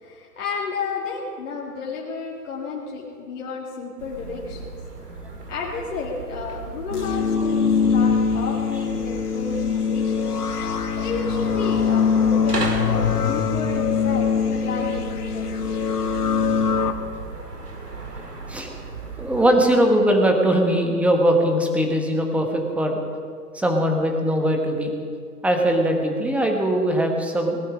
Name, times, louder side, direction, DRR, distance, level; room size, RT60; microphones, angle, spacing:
voice 1, 0.0-4.7 5.5-10.3 11.0-15.7, left 4 dB, 55° left, -4 dB, 2.2 m, -32 dB
sound 1, 4.0-19.5, right 3 dB, 85° right, 2.3 m, -36 dB
sound 2, 6.9-16.9, left 6 dB, 75° left, 1.4 m, -22 dB
voice 2, 19.2-23.0 23.5-24.9 25.4-27.6, right 1 dB, 5° right, 2 dB, 1.2 m, -20 dB
19.0 x 12.0 x 5.1 m, 2.1 s
figure-of-eight pair, 120°, 46 cm